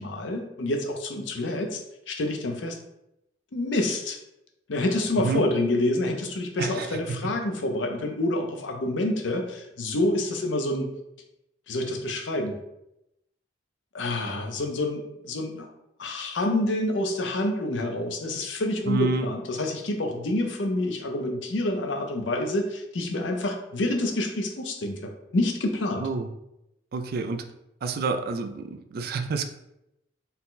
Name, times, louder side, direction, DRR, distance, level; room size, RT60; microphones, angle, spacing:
voice 1, 0.0-1.8 2.1-2.8 3.5-4.2 4.7-10.9 11.7-12.6 13.9-15.7 16.0-26.1, left 1 dB, 80° left, 3 dB, 0.6 m, -27 dB
voice 2, 6.6-7.2 18.9-19.3 26.0-26.3 26.9-27.4 27.8-29.5, right 4 dB, 55° right, 7 dB, 0.4 m, -28 dB
4.1 x 2.2 x 3.9 m, 0.85 s
head